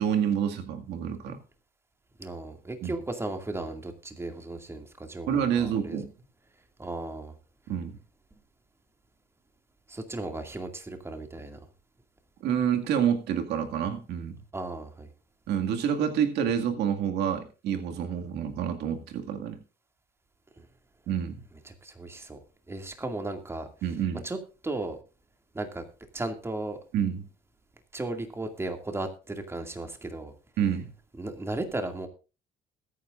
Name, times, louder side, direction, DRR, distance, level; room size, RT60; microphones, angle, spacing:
voice 1, 0.0-1.4 2.8-3.0 5.3-6.1 7.7-8.0 12.4-14.4 15.5-19.6 21.1-21.4 23.8-24.2 26.9-27.2 30.6-30.9, right 8 dB, 80° right, 5 dB, 2.0 m, -28 dB
voice 2, 2.2-6.0 6.8-7.3 9.9-11.6 14.5-15.1 20.6-20.7 21.8-22.4 22.7-23.7 24.2-24.4 24.6-25.0 25.5-25.8 26.1-26.8 27.9-30.3 31.2-32.1, right 2 dB, 15° right, 5 dB, 2.2 m, -35 dB
21.0 x 9.5 x 2.5 m, 0.33 s
cardioid pair, 110°, 17 cm